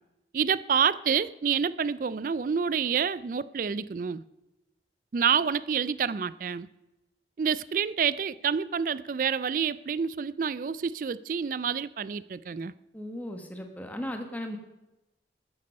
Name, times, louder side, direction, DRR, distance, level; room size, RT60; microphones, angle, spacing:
voice 1, 0.3-4.2 5.1-6.7 7.4-12.7, right 7 dB, 50° right, 0.4 m, -28 dB
voice 2, 12.9-14.6, left 1 dB, 10° left, 1.2 m, -36 dB
13.5 x 9.7 x 5.3 m
head